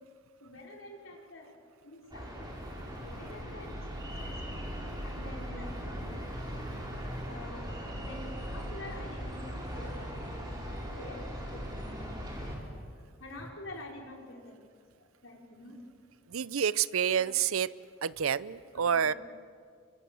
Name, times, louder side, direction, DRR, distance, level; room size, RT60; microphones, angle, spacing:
voice 1, 0.4-1.6 1.8-2.5 3.0-4.7 5.0-6.2 7.2-12.5 13.2-14.6 15.0-15.8 17.1-17.3 19.0-19.2, left 1 dB, 65° left, 0 dB, 4.9 m, -48 dB
sound 1, 2.1-12.6, equal, 20° right, 4.7 m, -39 dB
voice 2, 16.3-17.7 18.0-19.1, right 8 dB, 75° right, 18 dB, 0.6 m, -28 dB
28.5 x 24.5 x 7.1 m, 2.2 s
head